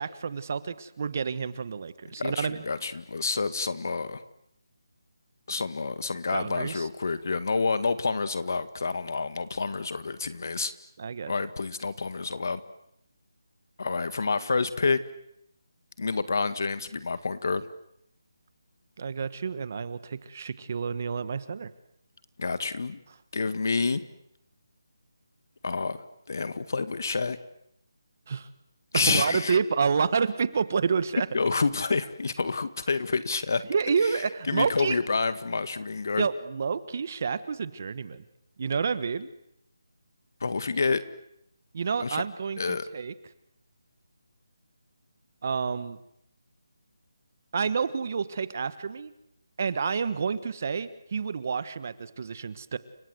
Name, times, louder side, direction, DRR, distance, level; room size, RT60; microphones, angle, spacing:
voice 1, 0.0-2.6 6.3-6.9 11.0-11.3 19.0-21.7 28.3-28.5 29.1-31.3 33.7-35.0 36.2-38.2 38.6-39.3 41.7-43.1 45.4-46.0 47.5-49.1 49.6-52.8, right 5 dB, 35° right, 15 dB, 1.3 m, -29 dB
voice 2, 2.2-4.2 5.5-10.7 11.3-12.6 13.8-15.0 16.0-17.7 22.4-23.0 23.3-24.0 25.6-26.0 26.3-27.4 28.9-29.6 31.3-33.6 34.0-34.2 34.5-36.3 40.4-41.0 42.0-42.2 42.6-42.8, left 4 dB, 50° left, 13 dB, 1.9 m, -28 dB
30.0 x 24.5 x 8.0 m, 0.76 s
figure-of-eight pair, 170°, 2 cm